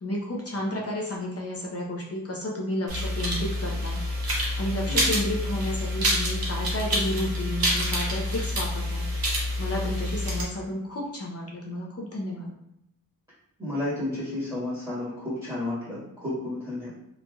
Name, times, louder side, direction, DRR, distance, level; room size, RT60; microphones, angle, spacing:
voice 1, 0.0-4.0 4.6-9.0 9.6-12.5, left 1 dB, 40° left, -2 dB, 0.6 m, -31 dB
sound 1, 2.9-10.4, equal, 75° right, 0.8 m, -27 dB
voice 2, 13.6-16.9, left 1 dB, 10° right, -10 dB, 1.4 m, -32 dB
3.0 x 2.7 x 2.3 m, 0.79 s
wide cardioid pair, 90°, 36 cm